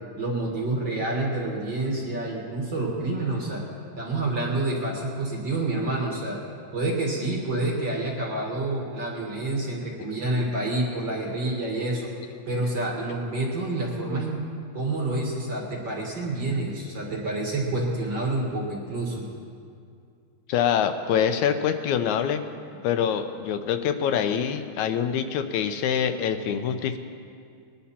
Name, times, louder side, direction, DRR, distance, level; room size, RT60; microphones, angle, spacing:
voice 1, 0.2-3.6 4.0-6.4 6.7-12.1 12.5-14.4 14.7-19.2, right 2 dB, 45° right, -2 dB, 2.1 m, -28 dB
voice 2, 20.5-22.4 22.8-27.0, left 8 dB, 80° left, 8 dB, 2.0 m, -25 dB
21.0 x 10.0 x 4.2 m, 2.4 s
omnidirectional pair, 3.5 m